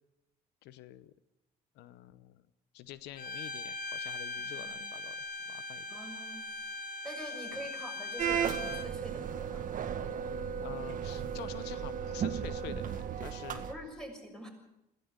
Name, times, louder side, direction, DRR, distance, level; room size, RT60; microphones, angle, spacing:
voice 1, 0.6-1.1 1.8-2.4 2.7-5.2 5.5-5.9 7.2-7.6 10.6-13.7, left 13 dB, 90° left, 15 dB, 0.9 m, -47 dB
Bowed string instrument, 3.2-8.9, left 2 dB, 55° left, 1.9 m, -40 dB
voice 2, 4.4-4.8 5.9-6.5 7.0-9.7 13.7-14.5, equal, 5° left, 2 dB, 6.5 m, -45 dB
sound 1, 8.2-13.7, right 8 dB, 50° right, 1.9 m, -35 dB
21.5 x 16.5 x 8.1 m, 0.86 s
cardioid pair, 110°, 17 cm